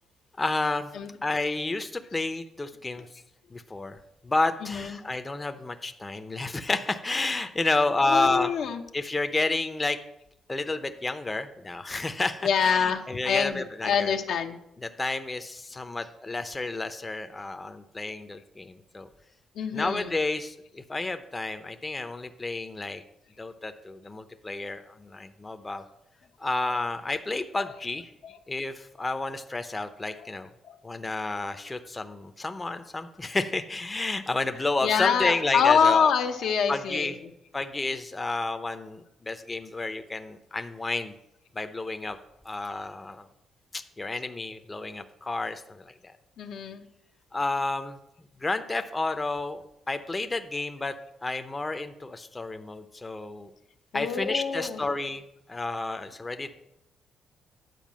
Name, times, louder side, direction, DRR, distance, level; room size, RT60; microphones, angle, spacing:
voice 1, 0.4-0.9 1.2-3.1 3.5-4.0 4.2-8.5 8.9-10.0 10.5-14.1 15.0-19.1 19.7-23.0 23.4-25.8 26.4-28.1 28.5-30.5 30.8-36.1 36.7-37.1 37.5-41.1 41.5-42.2 42.4-43.3 43.7-46.1 47.3-48.0 48.4-50.9 51.2-53.5 53.9-55.2 55.5-56.5, left 2 dB, 20° left, 8 dB, 0.7 m, -30 dB
voice 2, 4.6-5.0 8.1-8.8 12.4-14.6 19.6-20.1 28.2-28.4 30.6-30.8 34.8-37.1 46.4-46.9 53.9-54.8 56.4-56.5, left 7 dB, 75° left, 5 dB, 0.9 m, -25 dB
9.3 x 4.7 x 7.3 m, 0.82 s
cardioid pair, 90°, 0 cm